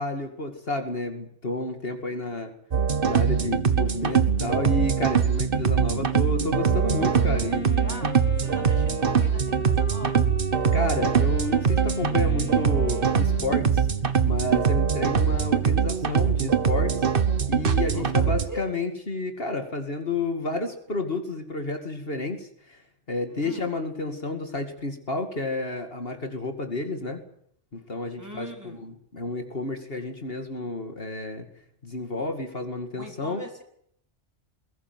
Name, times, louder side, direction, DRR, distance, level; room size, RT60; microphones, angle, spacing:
voice 1, 0.0-2.5 3.1-7.8 10.7-13.9 14.2-17.1 17.5-22.8 23.1-27.2 27.7-31.5 31.8-33.4, left 2 dB, 55° left, 5 dB, 2.6 m, -31 dB
sound 1, 2.7-18.5, right 6 dB, 50° right, 1.4 m, -23 dB
Wind instrument woodwind instrument, 6.5-14.2, left 1 dB, 10° left, 2.0 m, -38 dB
voice 2, 8.4-10.2 17.9-18.7 23.4-23.7 28.2-28.8 32.9-33.6, equal, 15° right, 2 dB, 4.1 m, -40 dB
22.0 x 16.5 x 9.7 m, 0.67 s
omnidirectional pair, 1.2 m